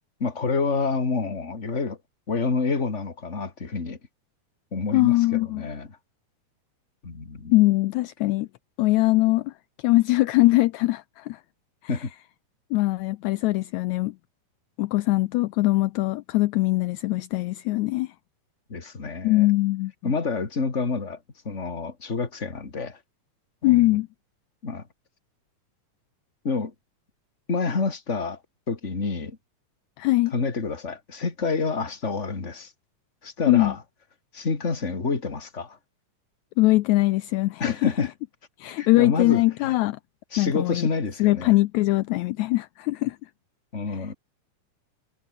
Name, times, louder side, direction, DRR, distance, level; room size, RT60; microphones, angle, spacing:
voice 1, 0.2-2.0 2.3-4.0 4.7-6.0 7.0-7.5 11.9-12.1 18.7-19.5 20.0-21.2 21.4-23.0 23.6-24.0 24.6-24.9 26.4-26.7 27.5-28.4 28.7-29.4 30.3-32.7 33.2-33.8 34.3-35.8 37.6-38.1 38.8-39.7 40.3-41.5 43.7-44.1, left 4 dB, 20° left, 2.7 m, -28 dB
voice 2, 4.9-5.7 7.5-8.5 8.8-9.5 9.8-11.4 12.7-14.1 14.8-18.1 19.2-19.9 23.6-24.1 30.0-30.3 33.5-33.7 36.6-37.8 38.6-40.0 40.4-40.9 41.2-43.2, left 19 dB, 80° left, 1.7 m, -22 dB
omnidirectional pair, 3.8 m